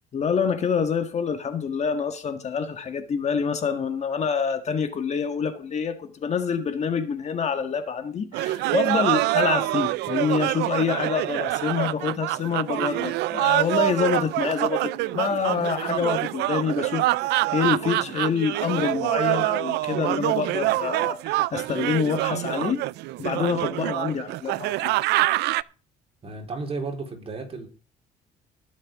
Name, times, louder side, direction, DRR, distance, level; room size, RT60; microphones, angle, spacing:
voice 1, 0.1-22.8 23.2-24.9, left 6 dB, 40° left, 1.7 m, -26 dB
sound 1, 8.3-25.6, right 18 dB, 80° right, 0.5 m, -25 dB
voice 2, 26.2-27.7, right 3 dB, 35° right, 4.1 m, -33 dB
19.5 x 7.3 x 3.7 m
cardioid pair, 110°, 17 cm